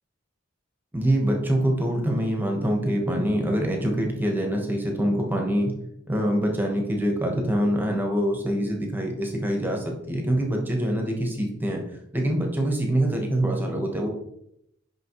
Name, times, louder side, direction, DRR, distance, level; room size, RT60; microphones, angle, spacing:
voice 1, 0.9-5.7 6.1-11.8 12.1-14.1, right 1 dB, 10° right, 1 dB, 1.2 m, -25 dB
6.0 x 5.5 x 3.1 m, 0.77 s
head